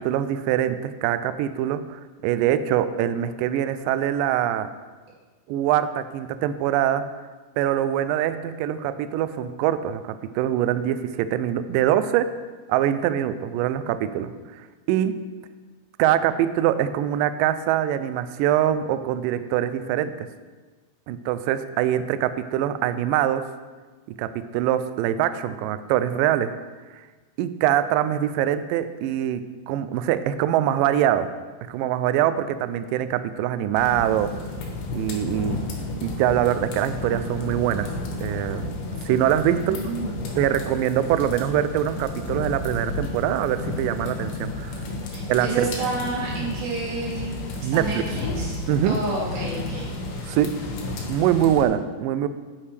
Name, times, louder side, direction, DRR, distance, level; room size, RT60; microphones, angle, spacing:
voice 1, 0.0-4.7 5.5-7.0 7.6-12.3 12.7-15.1 16.0-20.3 21.1-23.5 24.2-26.5 27.4-31.3 31.7-34.3 34.9-35.6 36.0-37.9 38.2-38.7 39.1-39.8 40.4-44.8 45.3-45.7 47.6-47.8 48.7-49.0 50.3-50.5 51.1-52.3, right 11 dB, 90° right, 11 dB, 1.9 m, -23 dB
sound 1, 33.7-51.7, left 2 dB, 80° left, 3.3 m, -32 dB
voice 2, 39.5-40.3 45.1-49.9, right 3 dB, 70° right, -6 dB, 4.4 m, -30 dB
9.4 x 8.8 x 3.3 m, 1.3 s
omnidirectional pair, 4.4 m